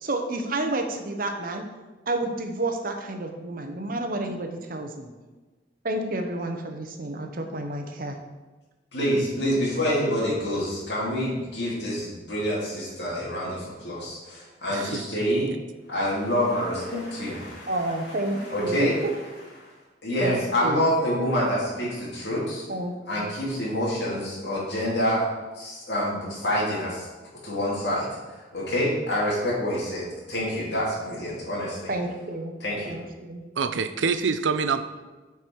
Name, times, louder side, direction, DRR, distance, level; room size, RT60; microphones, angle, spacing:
voice 1, 0.0-1.6 2.1-5.1 5.8-8.2 17.7-19.1 20.2-20.9 22.7-23.2 31.9-32.6 32.8-33.4, right 2 dB, 50° right, 5 dB, 0.9 m, -30 dB
voice 2, 8.9-15.5 15.9-17.8 18.1-18.2 18.5-19.0 20.0-22.6 23.1-25.3 25.6-27.1 27.4-28.1 28.5-31.9 32.6-33.0, equal, 65° left, -6 dB, 2.6 m, -27 dB
voice 3, 14.7-15.0 33.6-34.8, right 5 dB, 85° right, 11 dB, 0.5 m, -26 dB
8.2 x 4.8 x 4.5 m, 1.2 s
head